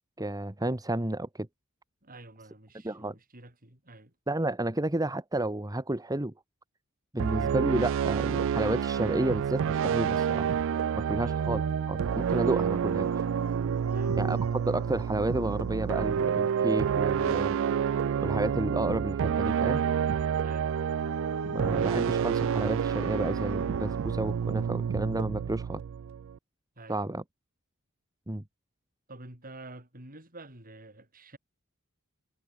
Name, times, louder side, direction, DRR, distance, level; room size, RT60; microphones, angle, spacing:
voice 1, 0.2-1.5 2.8-3.1 4.3-6.3 7.1-10.5 10.9-11.6 11.9-13.1 14.2-17.6 18.2-19.8 21.5-25.8 26.9-27.2 28.3-28.4, right 1 dB, 15° right, 1.4 m, -31 dB
voice 2, 2.0-4.1 7.1-7.4 11.2-11.4 13.9-14.2 20.4-20.7 26.8-27.0 29.1-31.4, right 2 dB, 40° right, 7.0 m, -49 dB
sound 1, 7.2-26.4, right 7 dB, 60° right, 0.3 m, -29 dB
Dog, 11.4-17.2 20.4-25.0, right 2 dB, 90° right, 6.6 m, -42 dB
head